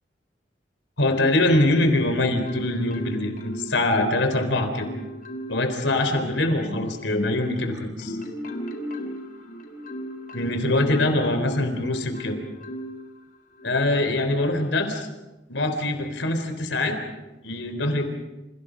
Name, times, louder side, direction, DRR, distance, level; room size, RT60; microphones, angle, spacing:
voice 1, 1.0-4.9 5.5-8.2 10.3-12.4 13.6-15.1 15.5-17.0 17.4-18.1, left 2 dB, 85° left, 7 dB, 3.9 m, -23 dB
Marimba xylophone, 1.1-2.0 2.5-4.3 4.8-5.7 6.2-11.6 12.1-13.0 13.6-13.8, equal, 50° left, 4.0 m, -35 dB
29.5 x 29.5 x 5.2 m, 1.0 s
head